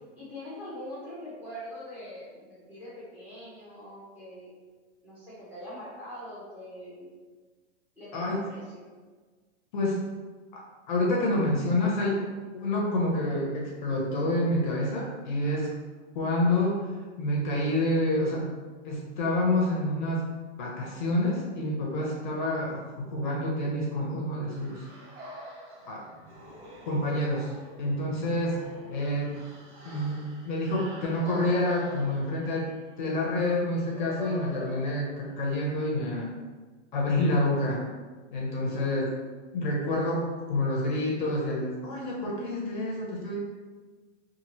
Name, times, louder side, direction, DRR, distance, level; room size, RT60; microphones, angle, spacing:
voice 1, 0.2-4.5 5.0-7.1 8.0-8.8 38.7-39.1, left 1 dB, 5° right, -9 dB, 0.7 m, -43 dB
voice 2, 10.5-12.3 12.5-15.7 16.1-16.8 17.2-18.5 18.8-20.3 20.6-24.8 25.9-26.0 26.8-27.5 27.8-28.6 28.9-29.4 29.8-36.3 36.9-37.8 38.3-39.0 39.5-43.4, left 1 dB, 45° left, -3 dB, 0.6 m, -28 dB
sound 1, 24.5-35.6, equal, 85° right, 1.3 m, -46 dB
2.8 x 2.5 x 2.9 m, 1.4 s
hypercardioid pair, 160°, 36 cm